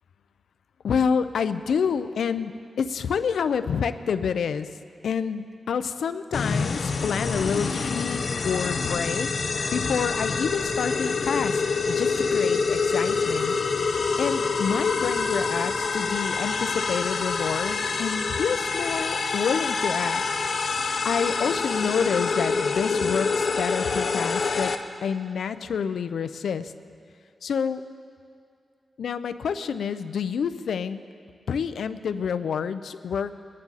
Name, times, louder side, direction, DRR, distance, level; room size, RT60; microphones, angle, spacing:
voice 1, 0.8-4.7 5.0-9.3 9.7-11.6 11.9-13.5 14.2-20.2 21.0-24.7 25.0-26.7 27.4-27.8 29.0-31.0 31.5-33.3, left 6 dB, 90° left, 12 dB, 0.5 m, -28 dB
sound 1, 6.3-24.8, left 4 dB, 45° left, 0.6 m, -26 dB
21.5 x 9.7 x 4.0 m, 2.4 s
wide cardioid pair, 180°, 0 cm